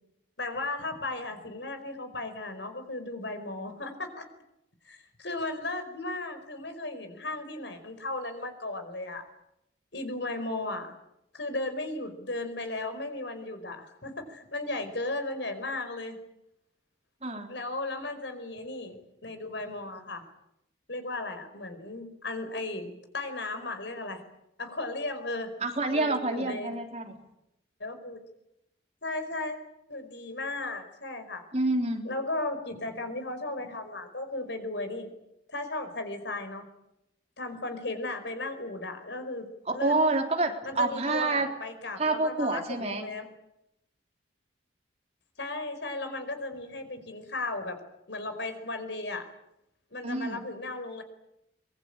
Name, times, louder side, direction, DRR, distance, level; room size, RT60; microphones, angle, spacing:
voice 1, 0.4-4.2 4.8-9.2 9.9-10.9 11.3-16.2 17.5-20.2 20.9-24.2 24.6-25.5 25.9-26.7 27.8-28.2 29.0-29.6 29.9-31.4 32.0-35.1 35.5-36.6 37.4-40.0 40.6-43.3 45.4-47.8 48.1-49.3 49.9-51.0, left 2 dB, 70° left, 8 dB, 5.0 m, -35 dB
voice 2, 25.6-27.1 31.5-32.0 39.7-41.5 42.0-43.1 50.0-50.5, right 2 dB, 35° right, 3 dB, 3.7 m, -28 dB
24.0 x 22.5 x 8.9 m, 0.85 s
head